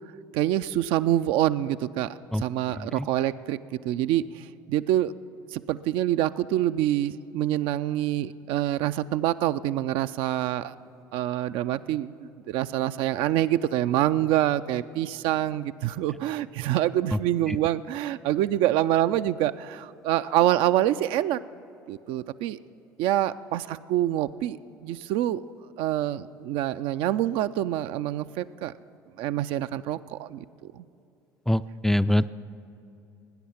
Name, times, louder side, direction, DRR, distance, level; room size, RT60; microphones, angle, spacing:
voice 1, 0.3-2.1 2.3-3.6 3.8-5.1 5.5-10.7 11.1-21.4 21.9-22.6 23.0-25.4 25.8-28.7 29.2-30.8, right 13 dB, 60° right, 12 dB, 0.4 m, -26 dB
voice 2, 31.5-32.3, left 1 dB, 5° left, 13 dB, 0.4 m, -23 dB
19.0 x 9.8 x 5.8 m, 2.8 s
figure-of-eight pair, 60°, 10 cm